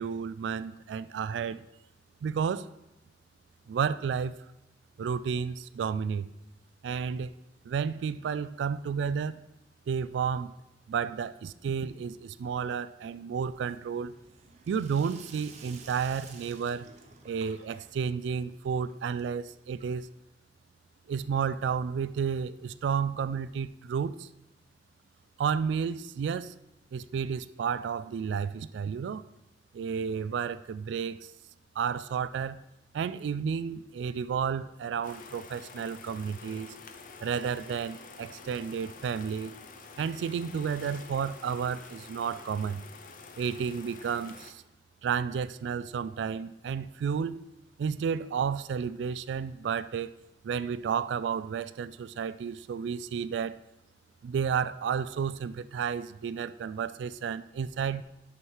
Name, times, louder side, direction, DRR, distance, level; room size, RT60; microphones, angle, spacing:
voice 1, 0.0-1.6 2.2-2.7 3.7-4.4 5.0-6.3 6.8-7.3 7.6-9.4 9.9-10.6 10.9-14.1 14.7-16.9 17.3-20.1 21.1-24.3 25.4-26.5 26.9-29.2 29.7-31.3 31.8-32.6 32.9-36.7 37.2-39.5 40.0-42.8 43.4-44.6 45.0-47.4 47.8-50.1 50.4-53.6 54.2-58.0, right 6 dB, 80° right, 16 dB, 0.3 m, -32 dB
Sink (filling or washing), 13.5-20.2, right 4 dB, 40° right, 0.8 m, -53 dB
sound 1, 35.0-44.5, left 4 dB, 50° left, 0.6 m, -48 dB
6.3 x 6.0 x 4.7 m, 0.90 s
head